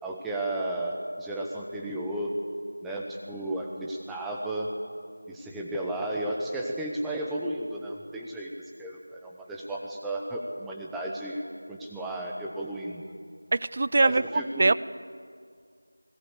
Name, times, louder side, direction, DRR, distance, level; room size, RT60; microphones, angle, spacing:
voice 1, 0.0-2.4 2.8-4.7 5.3-8.5 8.8-13.0 14.0-14.7, right 1 dB, ahead, -2 dB, 0.9 m, -33 dB
voice 2, 13.5-14.7, right 3 dB, 30° right, 17 dB, 0.4 m, -23 dB
21.0 x 18.0 x 8.3 m, 2.1 s
figure-of-eight pair, 175°, 0 cm